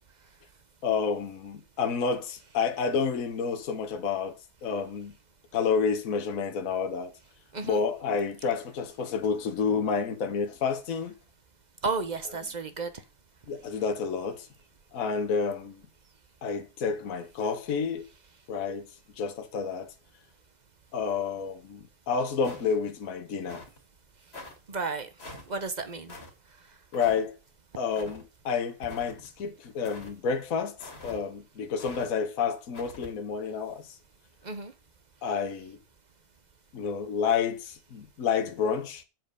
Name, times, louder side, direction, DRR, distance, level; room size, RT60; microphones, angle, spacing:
voice 1, 0.8-5.1 5.5-7.1 7.6-11.1 13.5-14.5 14.9-15.8 16.4-18.1 18.5-18.9 19.2-19.9 20.9-23.6 26.9-27.4 27.8-30.8 31.0-33.9 35.2-35.8 36.7-39.0, left 6 dB, 60° left, 1.5 m, -29 dB
voice 2, 11.8-12.9 24.7-25.1 25.5-26.2 34.4-34.7, right 4 dB, 30° right, 0.9 m, -32 dB
sound 1, 22.4-22.9 23.4-23.8 24.3-24.6 25.2-25.5 26.1-26.3 26.9-27.2 27.9-28.2 28.8-29.3 29.8-30.2 30.8-31.2 31.8-32.1 32.7-33.1, left 2 dB, 40° left, 2.5 m, -45 dB
7.7 x 7.6 x 5.1 m
omnidirectional pair, 1.7 m